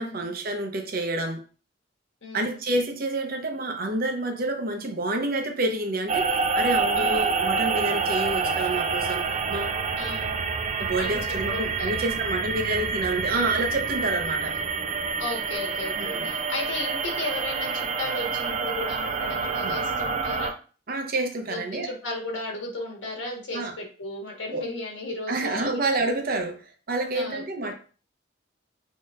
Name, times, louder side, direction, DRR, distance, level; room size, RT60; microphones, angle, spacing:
voice 1, 0.0-1.4 2.3-9.8 10.8-14.6 16.0-16.3 19.6-19.8 20.9-21.9 23.5-23.7 24.5-24.7 25.3-27.7, right 2 dB, 50° right, 0.8 m, -28 dB
voice 2, 2.2-2.6 7.0-7.3 10.0-10.4 11.0-11.2 11.5-11.9 12.5-12.9 15.2-20.5 21.5-25.8 27.1-27.7, left 2 dB, 85° left, 1.4 m, -35 dB
sound 1, 6.1-20.5, right 5 dB, 35° right, 0.4 m, -27 dB
6.3 x 3.0 x 2.5 m
head